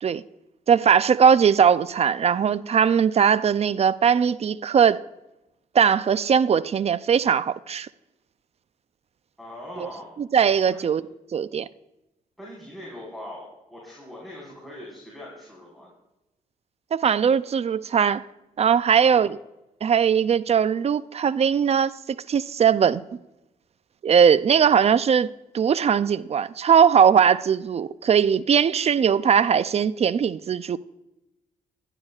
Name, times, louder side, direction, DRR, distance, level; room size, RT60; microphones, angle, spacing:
voice 1, 0.7-5.0 5.7-7.9 9.8-9.9 10.2-11.0 11.3-11.7 16.9-18.2 18.6-19.4 19.8-21.9 22.3-23.0 24.0-30.8, right 7 dB, 45° right, 0.4 m, -20 dB
voice 2, 9.4-10.1 10.7-10.9 12.4-15.9 19.0-19.3, left 1 dB, ahead, 4.7 m, -41 dB
19.5 x 11.5 x 2.4 m
cardioid pair, 70°, 15 cm